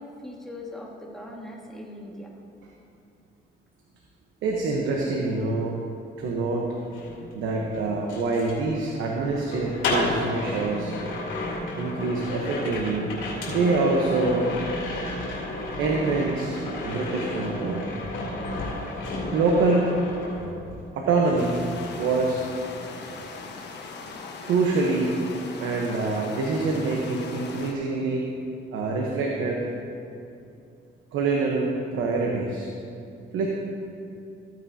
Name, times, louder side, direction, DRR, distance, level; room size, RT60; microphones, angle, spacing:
voice 1, 0.0-2.3, left 1 dB, ahead, -3 dB, 1.8 m, -40 dB
voice 2, 4.4-5.7 6.2-6.7 7.3-10.9 11.8-13.1 13.5-14.5 15.8-17.9 19.3-20.0 20.9-21.6 22.0-22.4 24.4-25.1 25.6-28.3 28.7-29.6 31.1-32.7 33.3-33.5, right 3 dB, 85° right, -1 dB, 1.0 m, -25 dB
sound 1, 6.8-20.9 21.2-22.7 23.0-23.3, left 2 dB, 85° left, 2.4 m, -33 dB
sound 2, 21.4-27.7, left 4 dB, 60° left, 1.2 m, -40 dB
14.5 x 9.2 x 2.8 m, 2.6 s
cardioid pair, 90°, 20 cm